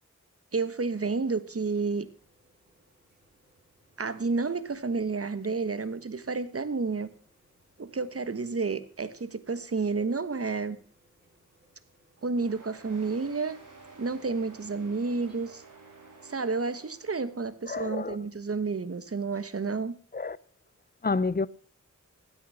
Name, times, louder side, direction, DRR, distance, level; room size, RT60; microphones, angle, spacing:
voice 1, 0.5-2.1 4.0-7.1 7.8-10.8 12.2-13.6 14.0-15.6 16.2-19.9, right 4 dB, 50° right, 1.3 m, -30 dB
sound 1, 0.9-15.4, right 1 dB, 35° right, 6.5 m, -67 dB
sound 2, 12.4-17.5, right 3 dB, 85° right, 3.9 m, -52 dB
voice 2, 17.7-18.2 20.1-20.4 21.0-21.5, left 4 dB, 30° left, 0.7 m, -28 dB
15.5 x 9.9 x 5.7 m
wide cardioid pair, 70°, 30 cm